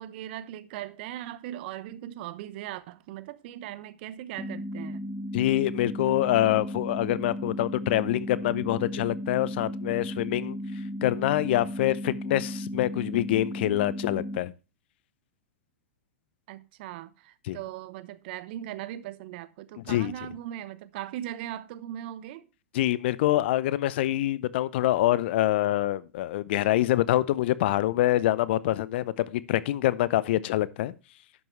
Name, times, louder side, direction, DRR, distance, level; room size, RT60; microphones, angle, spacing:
voice 1, 0.0-5.0 16.5-22.5, right 12 dB, 50° right, 0.9 m, -39 dB
sound 1, 4.4-14.4, equal, 5° right, 0.7 m, -35 dB
voice 2, 5.3-10.6 11.0-14.5 17.5-17.6 19.9-20.1 22.7-30.9, left 14 dB, 55° left, 0.7 m, -25 dB
11.0 x 7.6 x 3.2 m
hypercardioid pair, 105°, 7 cm